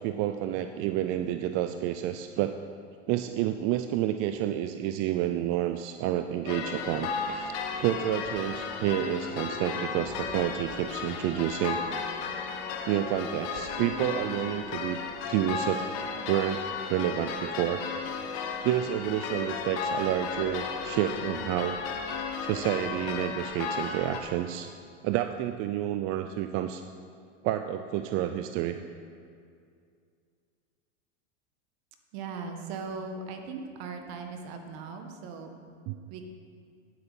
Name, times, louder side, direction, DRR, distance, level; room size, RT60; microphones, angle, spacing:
voice 1, 0.0-2.5 3.1-11.8 12.8-15.0 15.3-15.8 16.3-16.6 16.9-17.8 18.6-21.8 22.4-24.7 25.0-26.8 27.4-28.8 35.9-36.0, right 12 dB, 40° right, 8 dB, 0.4 m, -29 dB
sound 1, 6.4-24.2, left 5 dB, 55° left, 1.3 m, -34 dB
voice 2, 32.1-35.5 36.1-36.2, right 4 dB, 55° right, 5 dB, 1.5 m, -39 dB
9.1 x 8.3 x 5.4 m, 2.3 s
hypercardioid pair, 110°, 36 cm